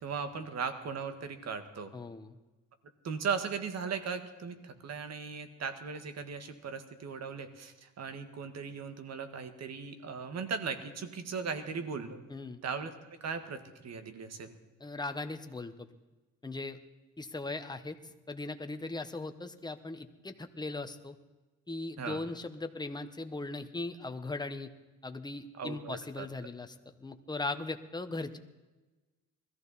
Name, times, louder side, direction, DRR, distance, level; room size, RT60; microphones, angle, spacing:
voice 1, 0.0-1.9 3.0-12.3 12.6-12.9 13.2-14.5 22.0-22.2 25.6-26.3, right 5 dB, 60° right, 9 dB, 1.8 m, -38 dB
voice 2, 1.9-2.3 12.3-12.6 14.8-15.9 16.4-16.8 17.2-18.0 18.3-21.2 21.7-24.7 25.0-28.4, left 2 dB, 15° left, 8 dB, 1.2 m, -39 dB
21.0 x 14.5 x 4.2 m, 1.2 s
cardioid pair, 90°, 30 cm